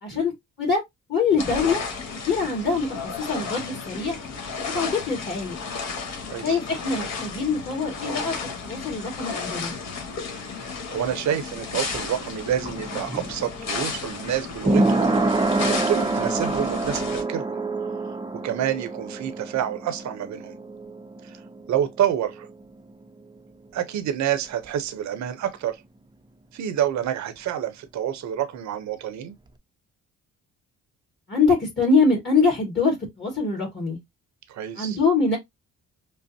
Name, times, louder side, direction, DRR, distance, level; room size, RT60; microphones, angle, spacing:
voice 1, 0.0-0.3 0.6-0.8 1.1-1.8 2.3-2.9 3.2-4.2 4.7-5.6 6.4-8.3 8.6-9.7 31.3-34.0 34.8-35.4, left 4 dB, 35° left, 2.0 m, -23 dB
sound 1, 1.4-17.2, left 5 dB, 60° left, 1.4 m, -33 dB
voice 2, 10.6-15.2 15.7-17.6 18.4-20.5 21.2-21.4 21.7-22.5 23.7-25.8 26.5-29.4 34.5-35.0, right 10 dB, 65° right, 0.8 m, -28 dB
sound 2, 11.6-23.1 23.4-23.5, right 2 dB, 15° right, 0.5 m, -27 dB
5.3 x 2.0 x 2.7 m
cardioid pair, 90°, 30 cm